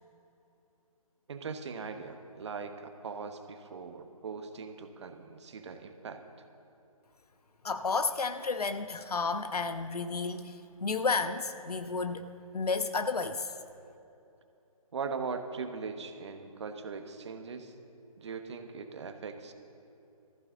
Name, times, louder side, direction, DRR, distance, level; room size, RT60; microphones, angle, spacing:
voice 1, 1.3-6.2 14.9-17.7 18.2-19.5, right 5 dB, 50° right, 7 dB, 1.1 m, -40 dB
voice 2, 7.6-12.3 12.5-13.5, left 4 dB, 85° left, 10 dB, 0.9 m, -32 dB
20.0 x 14.5 x 3.8 m, 2.8 s
figure-of-eight pair, 155°, 19 cm